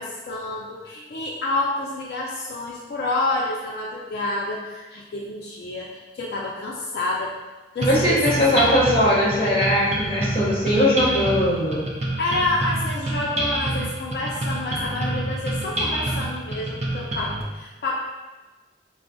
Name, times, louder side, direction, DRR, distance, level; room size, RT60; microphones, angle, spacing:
voice 1, 0.0-7.4 7.7-8.7 12.2-18.0, left 2 dB, 65° left, -3 dB, 0.3 m, -28 dB
voice 2, 7.8-11.9, equal, 30° left, -5 dB, 0.7 m, -20 dB
sound 1, 7.8-17.4, right 1 dB, 40° right, 0.4 m, -27 dB
4.4 x 2.0 x 2.5 m, 1.2 s
head